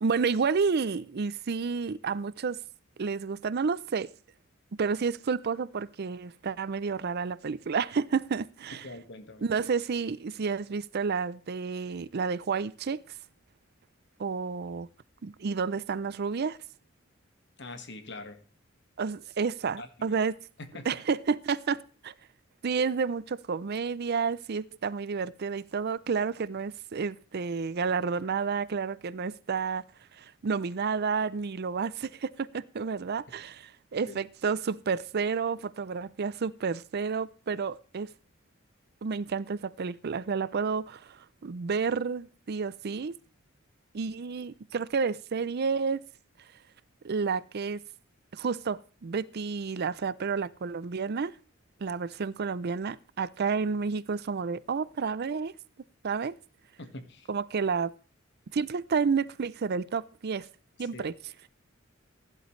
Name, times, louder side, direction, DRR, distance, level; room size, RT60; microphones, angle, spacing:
voice 1, 0.0-2.6 3.0-4.1 4.8-8.9 9.4-13.1 14.2-14.9 15.2-16.6 19.0-20.4 20.8-22.1 22.6-29.8 30.1-38.1 39.0-43.1 43.9-46.0 47.0-47.8 48.3-51.3 51.8-55.5 56.0-56.3 57.3-57.9 58.5-60.5 60.8-61.5, right 5 dB, 50° right, 0.5 m, -30 dB
voice 2, 8.8-9.4 17.6-18.4 19.8-19.9 20.7-20.9 34.0-34.2 56.8-57.3 60.9-61.0, left 2 dB, 60° left, 1.7 m, -43 dB
16.0 x 11.0 x 3.2 m
head